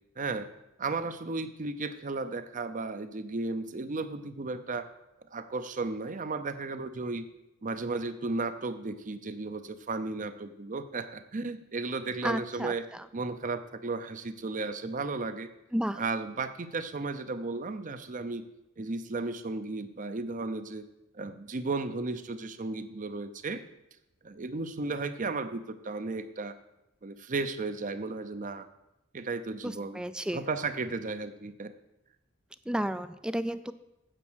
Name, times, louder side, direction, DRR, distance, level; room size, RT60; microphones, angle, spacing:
voice 1, 0.2-0.5 0.8-4.9 5.3-7.2 7.6-12.8 13.1-15.5 16.0-18.4 18.8-20.8 21.1-23.6 24.2-26.5 27.0-28.7 29.1-30.0 30.3-31.7, right 3 dB, 40° right, 11 dB, 0.7 m, -34 dB
voice 2, 12.2-13.0 15.7-16.0 29.6-30.4 32.7-33.7, equal, 5° right, 13 dB, 0.3 m, -32 dB
9.0 x 7.3 x 6.3 m, 0.91 s
head